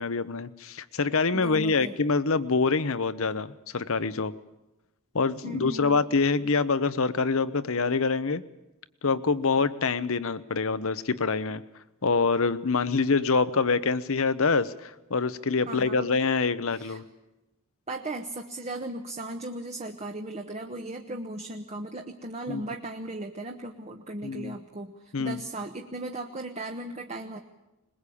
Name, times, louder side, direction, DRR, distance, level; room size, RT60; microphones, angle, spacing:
voice 1, 0.0-4.3 5.1-8.4 9.0-11.6 12.0-17.0 22.5-22.6 24.2-24.6 25.1-25.4, left 4 dB, 65° left, 13 dB, 0.9 m, -25 dB
voice 2, 1.3-1.9 5.4-6.0 15.6-16.1 16.8-17.0 17.9-27.4, right 2 dB, 30° right, 4 dB, 1.1 m, -37 dB
21.5 x 20.5 x 8.5 m, 0.99 s
head